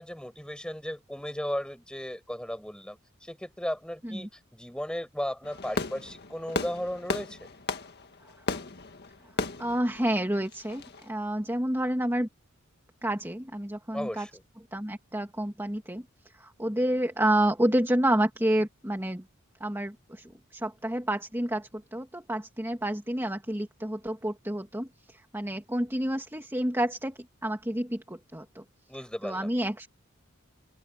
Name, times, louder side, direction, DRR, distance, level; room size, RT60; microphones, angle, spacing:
voice 1, 0.0-7.4 13.9-14.4 28.9-29.5, equal, 5° left, 7.9 m, -35 dB
Fireworks, 5.4-11.1, left 3 dB, 50° left, 1.8 m, -35 dB
voice 2, 9.6-12.3 13.0-14.3 14.7-16.1 16.4-19.2 19.6-28.6 29.2-29.9, right 1 dB, 10° right, 2.4 m, -29 dB
open air
head